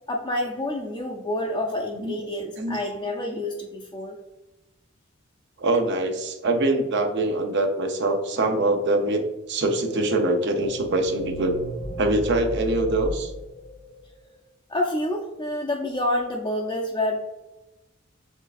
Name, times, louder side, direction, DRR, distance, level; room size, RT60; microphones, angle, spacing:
voice 1, 0.1-4.1 14.7-17.2, left 1 dB, 20° left, -1 dB, 0.4 m, -28 dB
voice 2, 5.6-9.2 9.5-11.5 12.0-13.3, right 2 dB, 60° right, 5 dB, 0.7 m, -23 dB
sound 1, 9.7-14.3, left 1 dB, 55° left, 0.8 m, -35 dB
6.3 x 3.4 x 2.4 m, 1.0 s
head